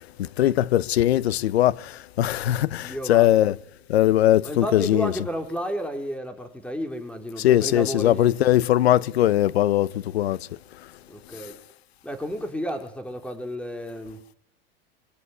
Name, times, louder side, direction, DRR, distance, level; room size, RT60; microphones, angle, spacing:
voice 1, 0.4-1.7 2.2-2.8 3.1-3.5 3.9-5.1 7.4-9.9 10.1-10.4, left 13 dB, 90° left, 1.0 m, -20 dB
voice 2, 2.8-3.3 4.4-8.4 11.1-11.6 12.0-14.4, equal, 5° left, 4.7 m, -32 dB
25.5 x 23.5 x 9.7 m
supercardioid pair, 115°, 31 cm